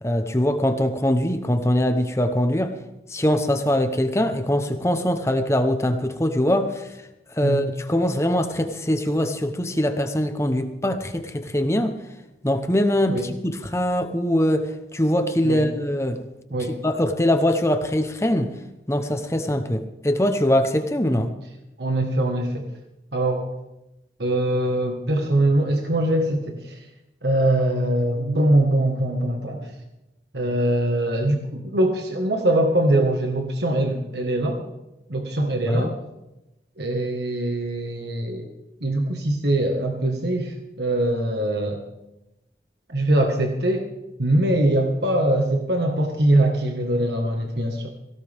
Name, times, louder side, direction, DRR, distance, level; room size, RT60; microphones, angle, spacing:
voice 1, 0.0-2.7 3.1-7.0 7.3-11.9 12.4-16.2 16.7-18.5 18.9-21.3 35.7-35.9, left 1 dB, 15° left, 7 dB, 1.0 m, -22 dB
voice 2, 21.8-22.7 23.1-23.5 24.2-26.8 27.2-29.7 30.3-34.6 35.1-36.0 36.8-38.5 38.8-41.8 42.9-43.9 44.2-47.9, right 1 dB, 70° right, 3 dB, 1.7 m, -22 dB
18.0 x 16.5 x 3.6 m, 0.95 s
head